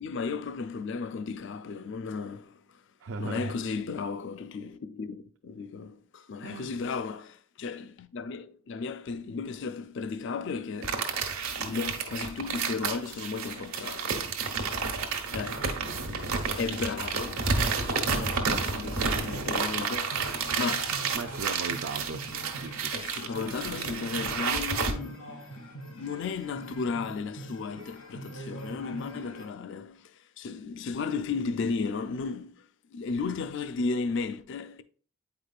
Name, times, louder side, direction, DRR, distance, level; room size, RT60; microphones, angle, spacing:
voice 1, 0.0-2.9 3.2-11.0 11.6-14.3 15.3-15.8 16.6-17.5 17.8-21.0 22.9-25.3 25.9-34.8, left 4 dB, 55° left, 0.4 m, -35 dB
voice 2, 3.0-3.5 6.4-6.7 21.1-22.2 22.6-22.9, right 4 dB, 60° right, 0.4 m, -37 dB
sound 1, 10.8-24.9, right 5 dB, 80° right, 1.1 m, -31 dB
sound 2, 15.4-29.4, equal, 85° left, 2.4 m, -44 dB
8.5 x 4.9 x 2.4 m
head